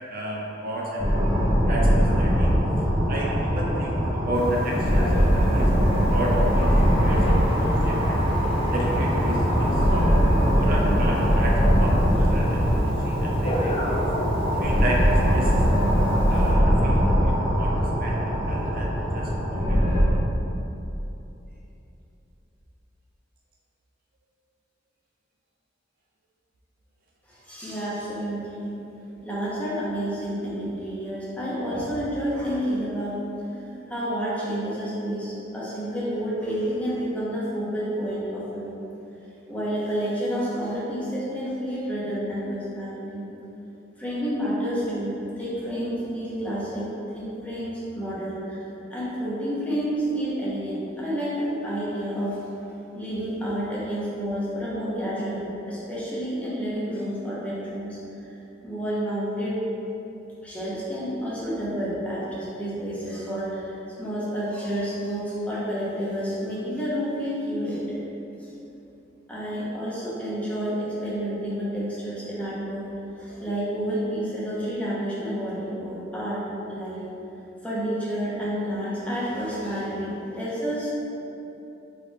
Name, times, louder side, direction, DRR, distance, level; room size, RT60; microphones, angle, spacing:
voice 1, 0.1-1.1 1.7-2.5 3.1-5.7 6.1-6.7 7.0-8.2 8.7-10.2 10.5-14.0 14.6-15.6 16.3-19.8, right 1 dB, 50° right, -2 dB, 0.5 m, -32 dB
sound 1, 1.0-20.0, equal, 25° right, 1.3 m, -21 dB
Thunder, 4.3-16.5, equal, 30° left, 0.5 m, -32 dB
voice 2, 27.3-28.7 29.2-33.2 33.5-33.6 33.9-38.8 39.5-43.3 44.0-48.6 48.9-52.4 52.9-58.3 58.6-59.6 60.4-68.0 68.4-68.5 69.3-72.8 73.2-76.4 76.7-77.0 77.6-80.9, equal, 10° left, -9 dB, 1.0 m, -29 dB
4.1 x 3.2 x 4.0 m, 3.0 s
head